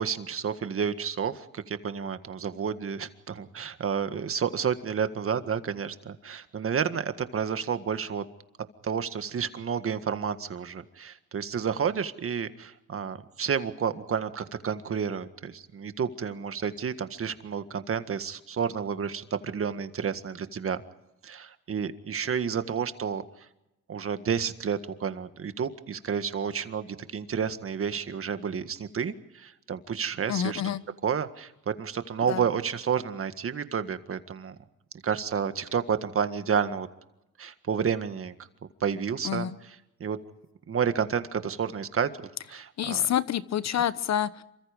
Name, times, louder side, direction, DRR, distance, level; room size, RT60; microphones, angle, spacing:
voice 1, 0.0-8.2 8.8-20.8 21.2-23.2 23.9-30.6 31.0-34.6 35.0-36.9 37.4-38.4 38.8-40.2 40.7-42.1 42.5-43.0 43.7-43.8, right 7 dB, 45° right, 10 dB, 1.8 m, -30 dB
voice 2, 30.3-30.8 32.3-32.4 39.2-39.5 42.8-44.4, left 10 dB, 60° left, 15 dB, 1.0 m, -28 dB
27.5 x 24.5 x 5.2 m, 0.91 s
cardioid pair, 90°, 30 cm